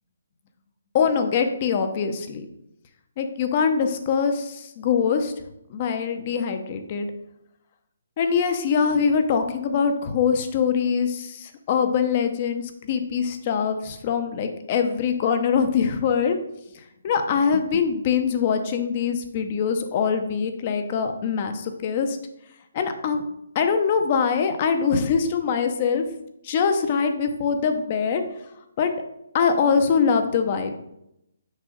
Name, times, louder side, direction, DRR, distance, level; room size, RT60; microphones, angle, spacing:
voice 1, 0.9-2.4 3.2-5.3 5.7-7.1 8.2-16.4 17.0-22.2 22.7-23.2 23.5-26.1 26.4-28.2 28.8-28.9 29.3-30.8, left 6 dB, 40° left, 7 dB, 0.8 m, -23 dB
6.3 x 4.8 x 3.9 m, 0.81 s
figure-of-eight pair, 145°, 0 cm